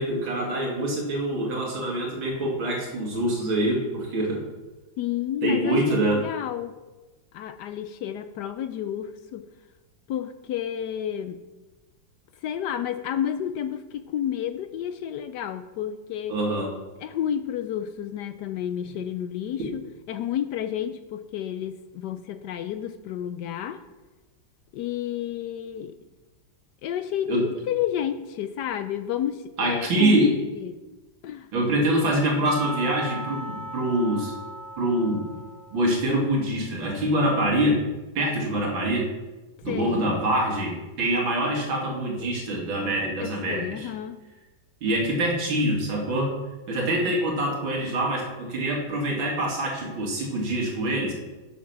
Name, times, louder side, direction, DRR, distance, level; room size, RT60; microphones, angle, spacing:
voice 1, 0.0-4.5 5.4-6.2 16.3-16.7 27.3-27.4 29.6-30.3 31.5-34.3 34.8-35.3 35.7-37.8 38.1-39.1 39.6-43.9 44.8-46.3 46.7-51.1, right 1 dB, 85° right, -1 dB, 3.0 m, -25 dB
voice 2, 5.0-6.8 7.3-9.5 10.1-11.4 12.4-16.4 17.0-23.8 24.7-26.0 26.8-30.8 31.2-31.5 39.7-40.2 43.2-44.2, left 10 dB, 75° left, 10 dB, 1.0 m, -31 dB
Percussion, 32.5-36.4, right 1 dB, 45° right, 1.1 m, -37 dB
10.5 x 7.3 x 5.9 m, 1.2 s
omnidirectional pair, 2.1 m